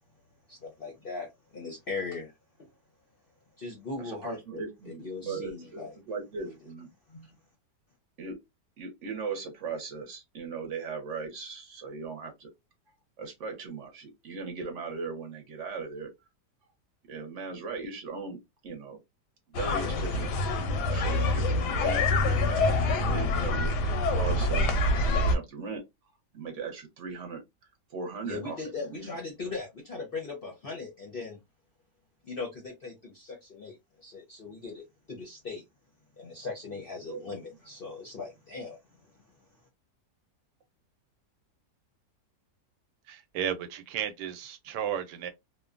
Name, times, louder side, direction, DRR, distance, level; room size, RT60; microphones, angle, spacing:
voice 1, 0.5-2.3 2.6-2.7 3.6-6.0 6.4-6.5 7.1-7.4 28.2-31.4 32.2-35.6 36.2-39.1, left 4 dB, 55° left, 0.6 m, -39 dB
voice 2, 4.0-6.9 8.2-8.4 8.8-12.5 13.2-16.1 17.1-19.0 19.5-20.3 20.9-24.7 25.0-25.8 26.3-27.4 27.9-28.6 28.8-29.1 37.0-37.3, right 4 dB, 55° right, 1.0 m, -38 dB
sound 1, 19.5-25.4, left 2 dB, 90° left, 1.2 m, -26 dB
voice 3, 43.1-45.3, right 9 dB, 85° right, 1.2 m, -34 dB
2.9 x 2.1 x 2.4 m
omnidirectional pair, 1.8 m